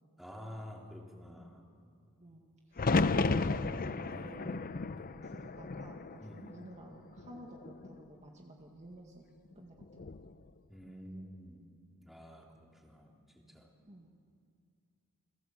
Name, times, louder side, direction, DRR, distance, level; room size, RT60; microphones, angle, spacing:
voice 1, 0.2-1.6 4.0-4.6 4.9-5.2 6.2-6.6 10.7-11.7 12.0-13.7, equal, ahead, -1 dB, 3.3 m, -49 dB
voice 2, 2.2-4.7 5.2-9.2 9.6-10.1 13.9-14.1, right 1 dB, 30° right, 1 dB, 1.9 m, -52 dB
sound 1, 2.8-6.8 7.2-7.9 9.8-10.3, left 3 dB, 40° left, 0.6 m, -33 dB
29.5 x 21.0 x 7.6 m, 2.3 s
head